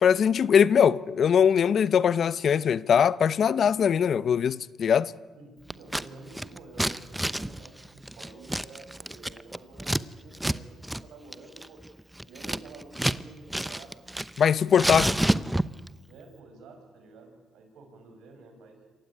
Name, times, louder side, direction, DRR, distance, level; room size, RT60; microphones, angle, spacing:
voice 1, 0.0-5.1 14.4-15.2, left 7 dB, 55° left, 0.7 m, -21 dB
voice 2, 5.4-11.8 12.2-14.0 16.0-18.9, right 3 dB, 80° right, 5.6 m, -49 dB
Scissors, 5.7-6.1 6.3-10.0 10.3-10.6 10.8-11.0 11.3-13.2 13.5-14.4 14.7-15.9, right 1 dB, 5° right, 0.8 m, -29 dB
27.0 x 15.5 x 9.7 m
cardioid pair, 90°, 0 cm